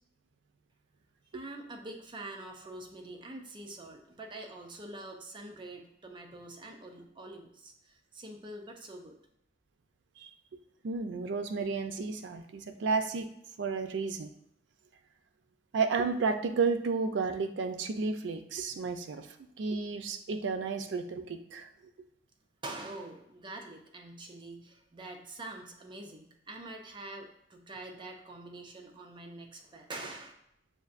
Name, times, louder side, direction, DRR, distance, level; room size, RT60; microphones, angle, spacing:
voice 1, 1.3-9.2 22.6-30.3, right 2 dB, 25° right, 2 dB, 0.5 m, -45 dB
voice 2, 10.8-13.3 13.6-14.3 15.7-19.3 19.6-21.7, right 4 dB, 85° right, 8 dB, 0.4 m, -32 dB
6.6 x 2.5 x 2.4 m, 0.74 s
head